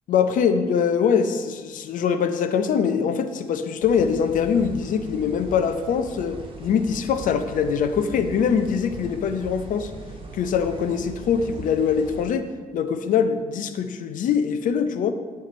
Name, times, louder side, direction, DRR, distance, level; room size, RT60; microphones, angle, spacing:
voice 1, 0.1-9.9 10.3-12.5 12.7-15.1, left 7 dB, 60° left, 9 dB, 0.5 m, -23 dB
sound 1, 3.8-12.3, right 3 dB, 35° right, 1.2 m, -39 dB
7.6 x 3.2 x 4.2 m, 1.4 s
supercardioid pair, 60°, 15 cm